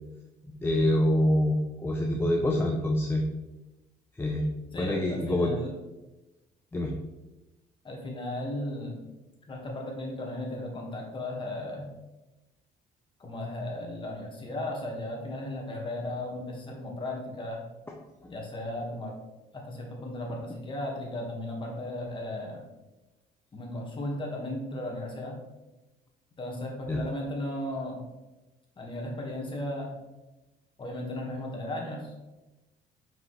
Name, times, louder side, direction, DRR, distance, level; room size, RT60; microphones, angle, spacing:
voice 1, 0.6-3.2 4.2-4.5 4.8-5.5 6.7-6.9 18.2-18.3 26.9-27.0, left 1 dB, 15° left, 0 dB, 0.6 m, -26 dB
voice 2, 4.7-5.7 7.8-9.1 9.5-11.9 13.2-17.6 18.3-19.2 19.5-22.6 23.5-25.4 26.4-28.0 28.8-29.9 30.8-32.1, left 1 dB, 30° left, -1 dB, 1.7 m, -35 dB
5.8 x 5.1 x 3.2 m, 1.1 s
cardioid pair, 110°, 17 cm